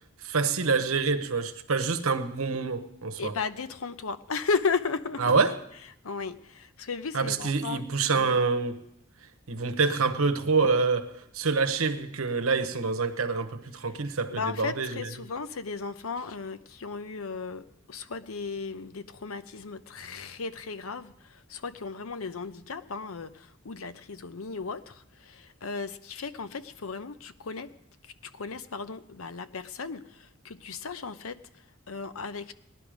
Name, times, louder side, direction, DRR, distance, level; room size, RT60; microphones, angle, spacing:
voice 1, 0.2-3.3 5.2-5.5 7.1-8.8 9.5-15.0, right 4 dB, 80° right, 1.0 m, -26 dB
voice 2, 3.2-5.3 6.0-8.4 14.3-27.7 28.0-32.5, left 4 dB, 80° left, 0.7 m, -35 dB
18.0 x 11.0 x 5.0 m
head